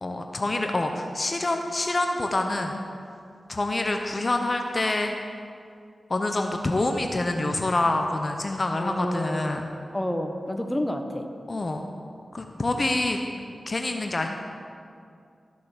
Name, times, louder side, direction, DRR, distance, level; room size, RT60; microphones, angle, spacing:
voice 1, 0.0-2.7 3.5-5.1 6.1-9.7 11.5-11.8 12.3-13.2 13.7-14.3, left 2 dB, 45° left, 4 dB, 0.9 m, -26 dB
voice 2, 8.8-9.6 9.9-11.3, left 1 dB, 10° left, 5 dB, 1.2 m, -29 dB
13.5 x 6.7 x 6.7 m, 2.4 s
cardioid pair, 40°, 0 cm